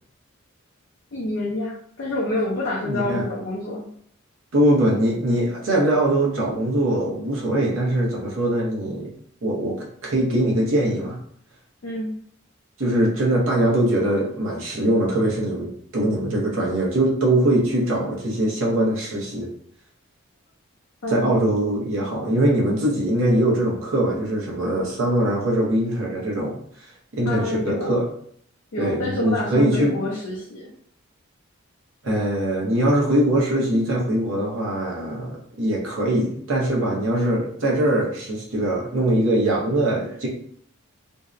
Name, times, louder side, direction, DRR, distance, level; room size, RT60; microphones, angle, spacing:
voice 1, 1.1-3.9 11.8-12.1 21.0-21.3 27.3-28.0 28.7-30.7, left 1 dB, 60° left, -4 dB, 0.5 m, -27 dB
voice 2, 2.8-3.2 4.5-9.1 9.4-11.2 12.8-19.5 21.1-26.9 27.1-28.0 28.8-30.0 32.0-40.3, right 1 dB, 65° right, -3 dB, 0.6 m, -22 dB
2.6 x 2.0 x 2.4 m, 0.62 s
head